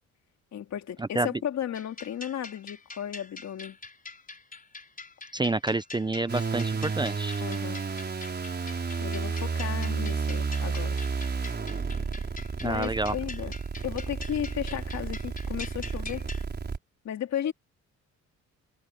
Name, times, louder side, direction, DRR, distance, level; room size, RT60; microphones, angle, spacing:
voice 1, 0.5-3.8 7.4-7.8 9.0-11.0 12.6-13.5 13.8-16.3 17.0-17.5, left 10 dB, 65° left, 2.8 m, -34 dB
sound 1, 1.7-16.4, left 3 dB, 30° left, 5.8 m, -45 dB
voice 2, 5.3-7.3 12.6-13.1, right 2 dB, 15° right, 0.7 m, -28 dB
sound 2, 6.3-16.8, right 5 dB, 35° right, 5.3 m, -31 dB
cardioid pair, 90°, 30 cm